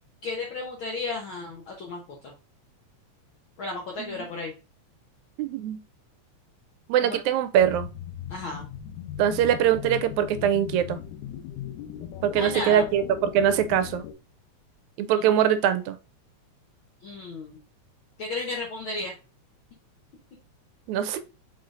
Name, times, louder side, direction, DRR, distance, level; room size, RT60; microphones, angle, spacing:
voice 1, 0.2-2.3 3.6-4.5 7.0-7.2 8.3-8.7 12.4-12.9 15.1-15.3 17.0-17.6 18.2-19.1, left 3 dB, 65° left, 1.3 m, -34 dB
voice 2, 4.0-4.3 5.4-5.8 6.9-7.9 9.2-11.0 12.2-14.0 15.0-16.0 20.9-21.2, right 10 dB, 80° right, 1.8 m, -23 dB
sound 1, 7.6-14.1, left 10 dB, 85° left, 2.1 m, -38 dB
5.0 x 4.3 x 2.4 m
omnidirectional pair, 3.3 m